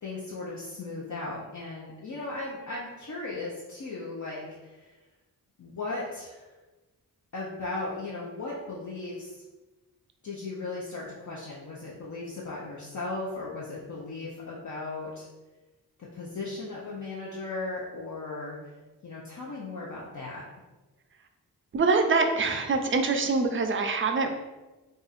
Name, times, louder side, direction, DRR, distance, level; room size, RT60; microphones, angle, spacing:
voice 1, 0.0-4.9 5.6-6.5 7.3-9.4 10.2-15.3 16.0-18.7 19.0-20.4, left 3 dB, 55° left, -6 dB, 0.7 m, -37 dB
voice 2, 21.7-24.3, right 4 dB, 35° right, 5 dB, 0.5 m, -24 dB
2.5 x 2.5 x 4.1 m, 1.1 s
cardioid pair, 75°, 36 cm